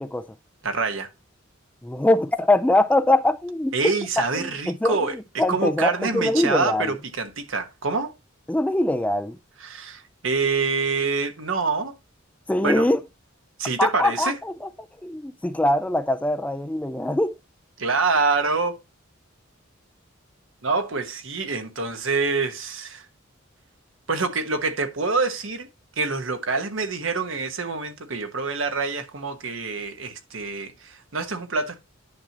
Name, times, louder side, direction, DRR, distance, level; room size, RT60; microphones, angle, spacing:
voice 1, 0.6-1.1 3.7-8.1 9.6-11.9 12.6-12.9 13.6-14.4 17.8-18.8 20.6-23.1 24.1-25.7 26.0-31.8, right 4 dB, 70° right, 1.2 m, -26 dB
voice 2, 1.8-3.7 4.3-4.5 4.8-6.9 8.5-9.4 12.5-13.0 13.8-14.7 15.0-17.3, left 1 dB, 5° left, 0.3 m, -22 dB
10.0 x 5.9 x 2.9 m
head